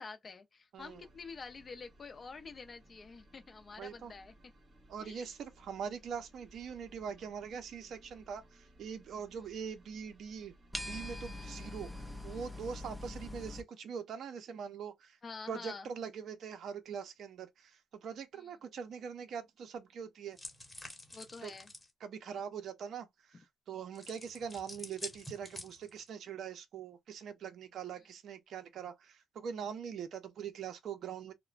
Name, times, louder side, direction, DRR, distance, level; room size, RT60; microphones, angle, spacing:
voice 1, 0.0-4.3 5.0-5.3 15.2-15.9 18.4-18.5 21.1-21.7, left 4 dB, 40° left, 0.5 m, -48 dB
voice 2, 0.7-1.1 3.8-4.1 4.9-15.2 15.5-20.4 21.4-21.5 22.0-31.3, right 7 dB, 65° right, 0.6 m, -43 dB
sound 1, 0.8-12.9, right 1 dB, 35° right, 1.5 m, -62 dB
sound 2, 10.7-13.6, left 1 dB, 10° right, 0.6 m, -43 dB
sound 3, 20.4-21.9 23.9-26.1, left 1 dB, 10° left, 1.1 m, -48 dB
2.8 x 2.1 x 2.4 m
cardioid pair, 90°, 0 cm